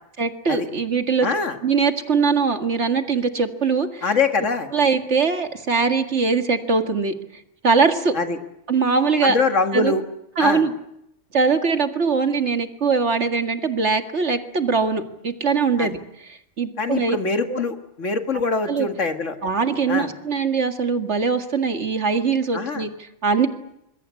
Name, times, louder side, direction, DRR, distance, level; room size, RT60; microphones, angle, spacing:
voice 1, 0.2-1.3 1.6-4.1 4.7-7.1 7.6-8.1 8.7-9.4 9.7-9.9 10.4-10.7 11.3-17.2 17.5-17.6 18.7-18.9 19.4-23.5, right 5 dB, 70° right, 6 dB, 2.3 m, -21 dB
voice 2, 1.2-1.6 4.0-4.7 8.1-8.4 9.2-10.0 10.4-10.6 15.8-15.9 16.8-19.4 19.9-20.1 22.5-22.9, left 4 dB, 85° left, 6 dB, 2.3 m, -23 dB
25.0 x 22.0 x 8.4 m, 0.81 s
omnidirectional pair, 1.2 m